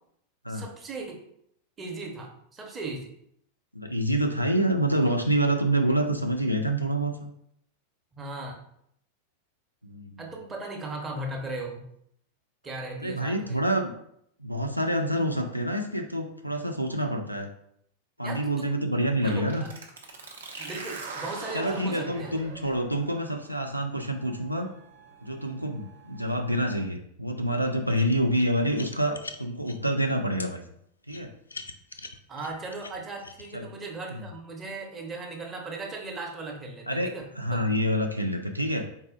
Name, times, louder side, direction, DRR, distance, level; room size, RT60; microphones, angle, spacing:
voice 1, 0.5-1.2 1.8-3.1 8.1-8.6 10.2-11.8 12.6-13.6 18.2-18.7 19.2-19.7 20.6-22.3 32.3-37.6, right 2 dB, 20° right, 0 dB, 0.9 m, -37 dB
voice 2, 3.7-7.3 9.8-10.2 13.0-13.9 14.4-17.5 18.2-19.6 21.5-24.7 25.2-30.6 31.1-31.3 33.5-33.7 34.1-34.3 36.9-38.9, right 1 dB, 90° right, 3 dB, 0.4 m, -27 dB
sound 1, 19.2-26.7, right 2 dB, 70° right, 0.7 m, -41 dB
sound 2, 27.9-29.8 30.4-30.5 31.1-33.5, left 3 dB, 80° left, 0.3 m, -42 dB
4.1 x 2.3 x 3.8 m, 0.70 s
figure-of-eight pair, 90°, 0 cm